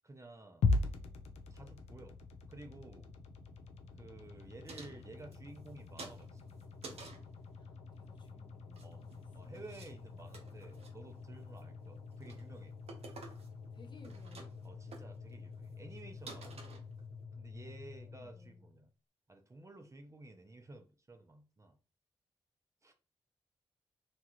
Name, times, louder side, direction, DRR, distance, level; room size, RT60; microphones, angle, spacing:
voice 1, 0.0-0.8 1.5-2.2 2.5-3.1 4.0-6.4 8.8-9.0 9.3-12.8 14.6-16.7 17.3-18.9 19.3-21.8 22.8-22.9, right 2 dB, 30° right, 0.6 m, -53 dB
sound 1, 0.6-18.8, left 3 dB, 85° left, 0.4 m, -42 dB
sound 2, 4.7-5.7 6.0-7.3 8.6-9.2 9.5-9.9 10.2-10.9 11.4-11.7 12.1-12.5 12.9-13.7 13.9-14.7 14.9-15.0 15.6-15.7 15.9-16.0 16.3-17.2, right 3 dB, 70° right, 0.7 m, -51 dB
voice 2, 7.5-9.5 13.7-14.5 17.6-18.7, left 3 dB, 45° left, 0.8 m, -61 dB
2.9 x 2.4 x 2.9 m
supercardioid pair, 45°, 11 cm